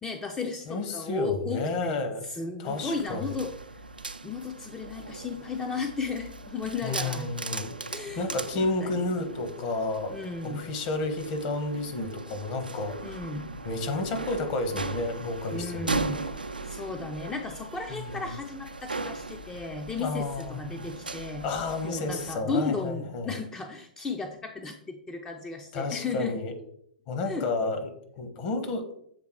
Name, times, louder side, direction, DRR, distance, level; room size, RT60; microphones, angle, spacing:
voice 1, 0.0-3.8 4.2-7.3 7.9-8.3 8.5-9.0 10.1-10.6 13.0-13.5 15.5-16.2 16.6-21.4 21.8-26.4 27.3-27.5, left 4 dB, 10° left, 4 dB, 0.5 m, -34 dB
voice 2, 0.7-2.3 2.6-3.3 6.8-7.8 8.2-10.2 10.4-13.2 13.6-15.9 17.9-18.2 20.0-20.8 21.4-23.3 25.7-26.5 27.1-28.9, left 2 dB, 40° left, 6 dB, 1.2 m, -31 dB
sound 1, 2.7-22.4, right 3 dB, 85° right, 0.5 m, -38 dB
sound 2, 12.8-21.8, left 4 dB, 70° left, 1.3 m, -51 dB
7.3 x 3.6 x 4.5 m, 0.69 s
figure-of-eight pair, 110°, 5 cm